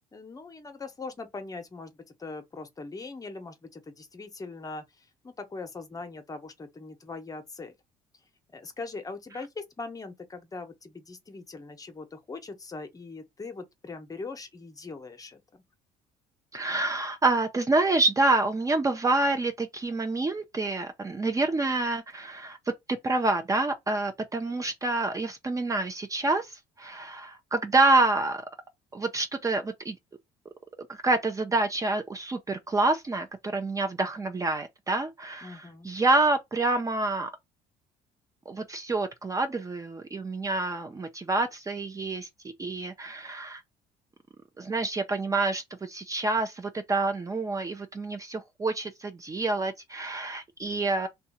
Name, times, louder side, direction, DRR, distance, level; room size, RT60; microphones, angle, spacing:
voice 1, 0.1-7.7 8.5-15.6 35.4-35.9, left 3 dB, 25° left, 0.8 m, -41 dB
voice 2, 16.5-28.4 28.9-30.0 30.9-37.3 38.5-42.3 42.6-43.6 44.6-51.1, right 2 dB, 20° right, 0.5 m, -27 dB
2.7 x 2.3 x 4.1 m
supercardioid pair, 85°, 15 cm